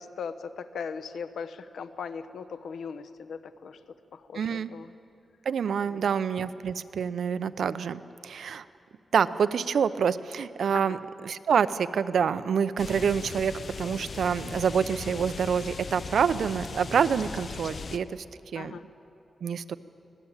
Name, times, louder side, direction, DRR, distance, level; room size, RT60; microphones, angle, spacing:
voice 1, 0.0-3.8 4.1-4.9 5.9-6.0 10.7-11.0 18.5-18.8, left 6 dB, 90° left, 10 dB, 0.9 m, -39 dB
voice 2, 4.3-4.7 5.5-8.6 9.1-11.0 11.2-18.2 18.5-18.8 19.4-19.7, right 7 dB, 75° right, 14 dB, 0.7 m, -27 dB
sound 1, 12.8-18.0, left 4 dB, 50° left, 0.9 m, -38 dB
24.5 x 17.5 x 8.9 m, 2.7 s
wide cardioid pair, 135°, 0 cm